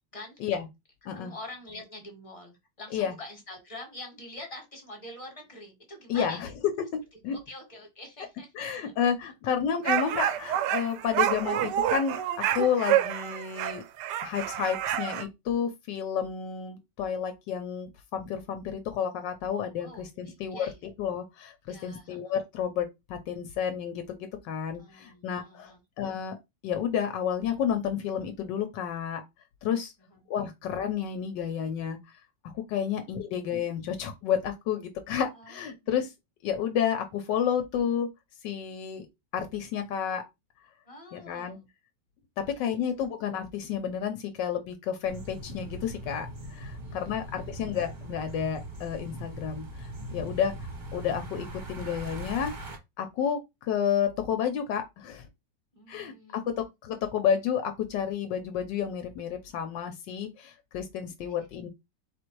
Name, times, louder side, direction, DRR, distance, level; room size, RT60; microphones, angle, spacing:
voice 1, 1.1-6.5 7.3-8.6 9.5-9.6 9.8-10.0 19.8-20.8 21.7-22.3 24.8-25.8 30.1-30.2 32.8-33.1 35.1-36.0 40.8-41.7 42.4-42.9 46.8-47.5 55.7-56.6, left 1 dB, 20° left, 1.3 m, -46 dB
voice 2, 6.1-6.5 7.2-7.4 8.5-13.8 14.2-20.7 21.0-26.3 26.6-29.2 29.6-29.9 30.3-32.0 32.7-36.1 36.4-38.1 38.4-39.1 39.3-40.2 41.1-41.6 42.6-49.6 50.1-50.5 50.9-52.5 53.0-55.2 55.9-56.4 56.8-61.7, left 8 dB, 80° left, 1.3 m, -31 dB
sound 1, 9.8-15.2, right 11 dB, 75° right, 1.2 m, -28 dB
sound 2, 45.0-52.8, right 1 dB, 35° right, 0.8 m, -40 dB
4.0 x 2.5 x 4.5 m
omnidirectional pair, 1.9 m